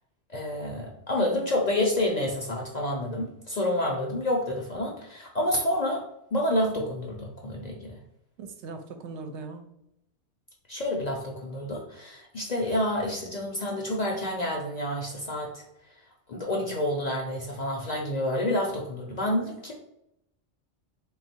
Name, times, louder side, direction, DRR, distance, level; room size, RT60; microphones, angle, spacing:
voice 1, 0.3-6.0 6.3-8.0 10.7-15.6 16.3-19.7, left 1 dB, 50° left, 0 dB, 0.5 m, -29 dB
voice 2, 8.4-9.7 19.1-19.2, right 4 dB, 75° right, 6 dB, 0.9 m, -40 dB
3.6 x 2.3 x 4.2 m, 0.79 s
omnidirectional pair, 1.2 m